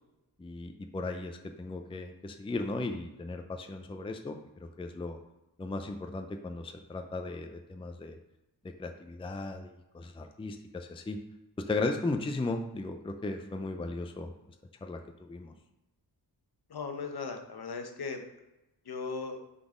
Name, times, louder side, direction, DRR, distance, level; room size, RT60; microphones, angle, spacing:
voice 1, 0.4-5.2 5.6-8.2 8.8-11.2 11.7-14.3 14.8-15.5, left 2 dB, 15° left, 5 dB, 0.5 m, -36 dB
voice 2, 16.7-18.2 18.8-19.4, left 4 dB, 65° left, 5 dB, 1.0 m, -37 dB
5.9 x 4.0 x 5.0 m, 0.97 s
wide cardioid pair, 100°, 41 cm